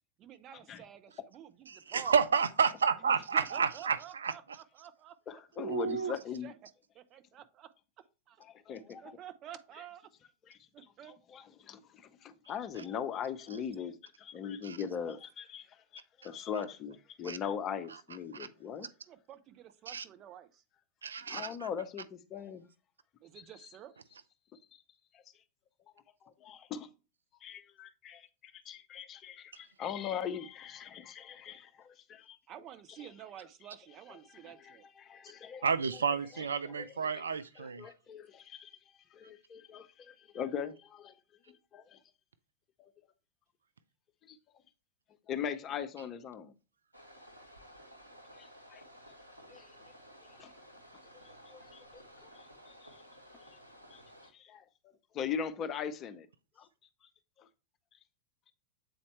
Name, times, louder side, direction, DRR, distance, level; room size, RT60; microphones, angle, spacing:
voice 1, 0.2-2.2 3.0-5.4 5.8-6.5 6.9-7.7 8.3-8.4 9.0-10.0 10.7-11.1 19.1-20.6 23.2-23.9 32.5-34.9, right 10 dB, 35° right, 0.7 m, -50 dB
voice 2, 1.7-4.3 5.6-6.1 14.6-14.8 17.2-17.4 18.3-18.5 19.9-20.0 21.0-21.7 35.6-37.9, right 6 dB, 70° right, 0.4 m, -31 dB
voice 3, 5.3-6.5 8.4-9.2 10.5-10.6 11.3-15.6 15.9-18.9 21.3-22.7 25.1-25.2 26.2-26.9 27.4-32.4 33.0-33.1 34.1-35.7 35.9-36.0 36.3-37.3 37.6-38.7 39.1-41.1 41.5-42.0 42.8-42.9 44.3-44.4 45.3-46.5 48.4-48.8 49.5-49.7 50.4-50.5 51.1-51.8 52.4-52.9 53.9-54.0 54.3-54.7 55.1-56.3 56.6-56.7 57.4-57.5, left 7 dB, 30° left, 0.7 m, -41 dB
sound 1, 46.9-54.3, equal, 85° right, 1.1 m, -55 dB
7.8 x 4.2 x 3.1 m
figure-of-eight pair, 90°, 0 cm